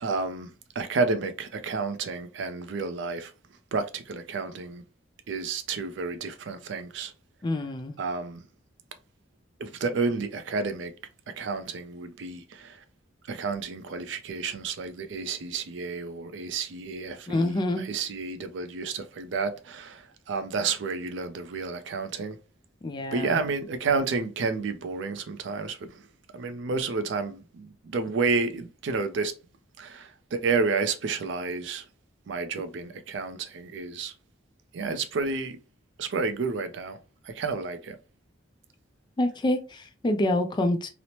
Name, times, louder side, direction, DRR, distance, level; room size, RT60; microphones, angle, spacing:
voice 1, 0.0-3.3 3.7-4.8 5.3-7.1 8.0-8.4 9.6-10.9 11.4-12.8 13.3-22.4 23.1-26.0 26.3-29.3 29.8-31.8 32.3-34.1 34.7-35.6 36.0-37.0 37.3-38.0, right 4 dB, 65° right, 0.4 m, -30 dB
voice 2, 7.4-8.0 17.3-17.8 22.8-23.4 39.2-40.9, left 1 dB, 25° left, 0.3 m, -27 dB
3.0 x 2.0 x 2.7 m
head